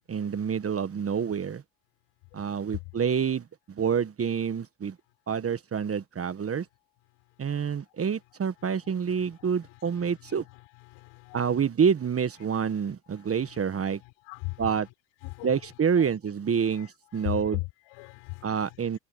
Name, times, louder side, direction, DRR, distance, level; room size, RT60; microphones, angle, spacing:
voice 1, 0.1-1.6 2.3-3.5 3.8-4.9 5.3-6.6 7.4-10.4 11.3-14.0 14.6-14.9 15.4-17.6 18.4-19.0, right 7 dB, 30° right, 1.5 m, -27 dB
voice 2, 8.6-11.6 12.7-12.8 13.2-13.6 13.9-14.9 15.2-16.1 16.6-19.0, left 27 dB, 70° left, 6.5 m, -41 dB
hypercardioid pair, 80°, 48 cm